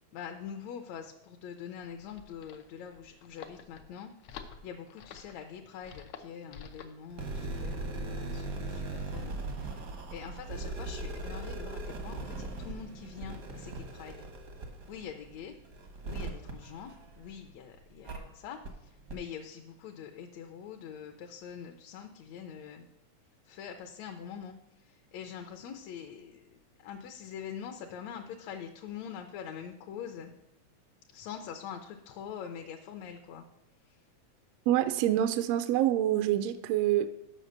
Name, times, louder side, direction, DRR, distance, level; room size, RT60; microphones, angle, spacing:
voice 1, 0.1-9.4 9.6-14.3 14.9-15.5 16.0-22.8 23.5-30.3 31.1-33.4 33.9-34.0, left 8 dB, 75° left, 4 dB, 1.8 m, -44 dB
sound 1, 1.8-7.0, left 7 dB, 90° left, 1.1 m, -49 dB
sound 2, 7.1-17.5 18.0-18.2 18.6-18.7 19.1-19.2, right 2 dB, 65° right, 0.8 m, -39 dB
voice 2, 34.7-37.1, right 12 dB, 80° right, 10 dB, 1.5 m, -26 dB
7.8 x 5.8 x 6.4 m, 0.97 s
omnidirectional pair, 3.3 m